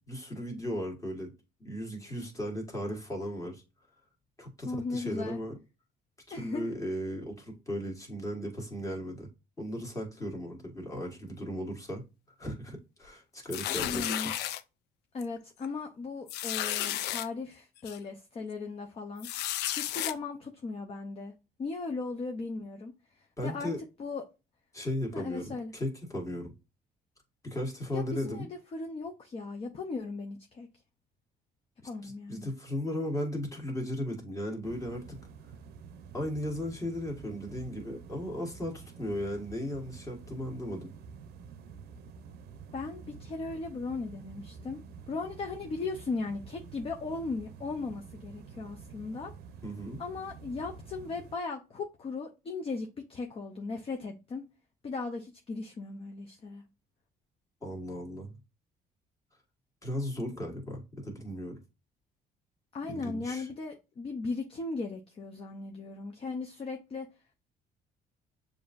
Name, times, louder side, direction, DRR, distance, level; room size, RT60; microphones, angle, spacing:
voice 1, 0.1-1.3 1.6-3.6 4.4-5.6 6.3-9.3 9.6-12.0 12.4-14.3 23.4-23.8 24.7-26.5 27.4-28.5 31.8-35.2 36.1-40.9 49.6-50.0 57.6-58.3 59.8-61.6 62.9-63.5, equal, 20° left, 1.6 m, -36 dB
voice 2, 4.6-5.4 6.3-6.7 13.7-14.3 15.1-19.3 19.7-21.3 21.6-23.7 24.0-24.2 25.1-25.7 27.9-30.7 31.8-32.5 42.7-44.8 45.1-49.3 50.0-54.4 54.8-56.6 62.7-67.1, left 3 dB, 35° left, 0.6 m, -37 dB
sound 1, 13.5-14.6 15.2-15.4 15.6-15.7 16.3-17.3 17.9-18.0 19.2-20.1, left 12 dB, 80° left, 0.4 m, -33 dB
sound 2, 34.6-51.4, right 6 dB, 70° right, 0.6 m, -49 dB
6.9 x 2.6 x 2.5 m
cardioid pair, 110°, 17 cm